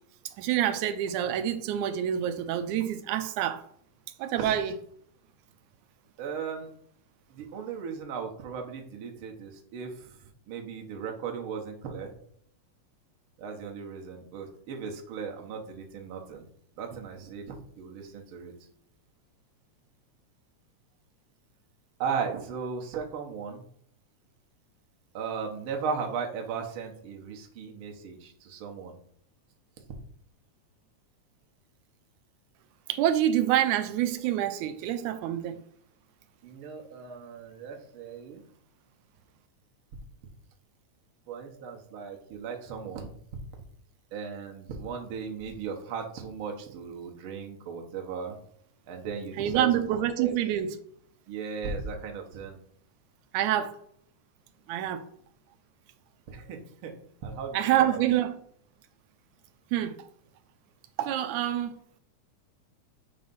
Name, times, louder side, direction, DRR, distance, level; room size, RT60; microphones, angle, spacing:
voice 1, 0.3-3.6 4.2-4.8 32.9-35.6 49.4-50.8 53.3-53.8 54.7-55.0 57.5-58.3 59.7-60.1 61.0-61.7, right 11 dB, 85° right, 2.0 m, -27 dB
voice 2, 6.2-6.7 7.3-10.2 10.5-12.1 13.4-16.4 16.8-18.5 22.0-23.6 25.1-28.9 36.4-38.4 41.3-43.1 44.1-48.3 48.9-50.3 51.3-52.6 56.3-56.9 57.2-58.0, right 6 dB, 60° right, 1.6 m, -36 dB
7.8 x 3.1 x 5.4 m
omnidirectional pair, 3.4 m